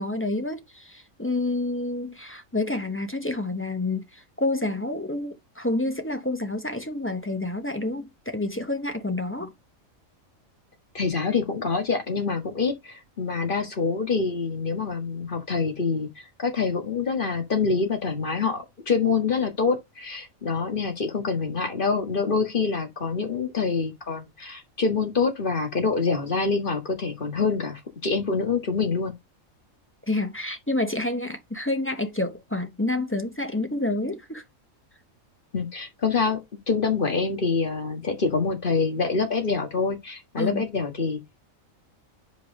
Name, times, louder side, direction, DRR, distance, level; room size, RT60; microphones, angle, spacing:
voice 1, 0.0-9.5 30.1-34.4 40.4-40.7, left 2 dB, 10° left, 0.7 m, -28 dB
voice 2, 10.9-16.1 16.4-29.1 35.5-36.4 36.7-41.2, left 4 dB, 40° left, 1.9 m, -26 dB
5.4 x 4.6 x 5.2 m
omnidirectional pair, 1.4 m